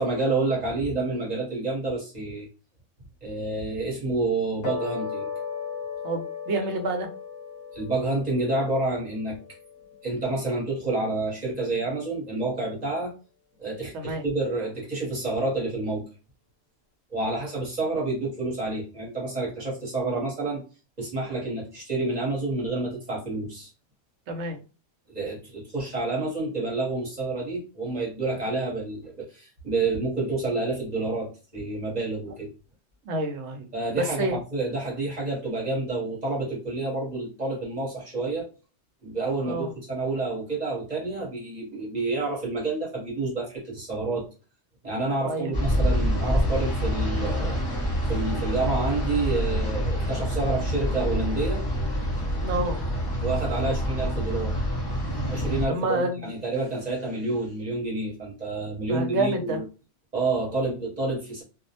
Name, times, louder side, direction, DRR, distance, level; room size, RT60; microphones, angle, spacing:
voice 1, 0.0-2.5 3.2-5.3 7.7-9.4 10.0-13.1 13.6-16.0 17.1-20.6 21.0-23.7 25.1-32.5 33.7-38.5 39.0-44.3 44.8-47.6 48.1-51.6 53.2-54.6 55.3-59.6 60.1-61.4, right 2 dB, 40° right, -4 dB, 0.9 m, -29 dB
sound 1, 4.6-11.1, left 6 dB, 55° left, 0.9 m, -37 dB
voice 2, 6.0-7.1 13.9-14.2 24.3-24.6 32.3-32.4 33.0-33.7 33.9-34.4 39.4-39.7 45.2-45.5 52.4-52.8 55.7-56.3 58.9-59.6, right 2 dB, 70° right, 5 dB, 0.8 m, -28 dB
sound 2, 45.5-55.7, equal, 25° left, 0.7 m, -26 dB
2.3 x 2.0 x 2.7 m, 0.33 s
omnidirectional pair, 1.3 m